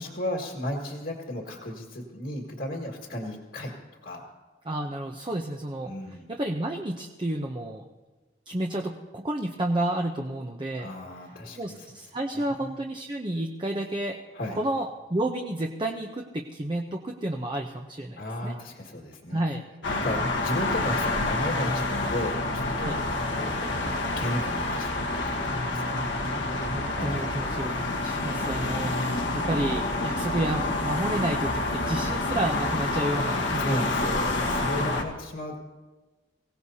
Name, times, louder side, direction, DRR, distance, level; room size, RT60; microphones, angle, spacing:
voice 1, 0.0-3.7 4.0-4.2 5.9-6.3 10.8-12.0 12.3-12.8 14.3-14.6 18.2-19.4 19.9-23.0 23.3-25.9 26.9-27.3 33.6-35.6, left 1 dB, 65° left, -1 dB, 1.9 m, -34 dB
voice 2, 4.6-5.9 6.3-7.8 8.5-10.9 11.6-14.2 14.6-18.6 19.3-19.6 22.8-23.0 25.8-34.3, right 1 dB, 25° right, 1 dB, 0.7 m, -31 dB
sound 1, 19.8-35.0, left 2 dB, 90° left, 1.5 m, -28 dB
24.0 x 17.0 x 2.8 m, 1.2 s
head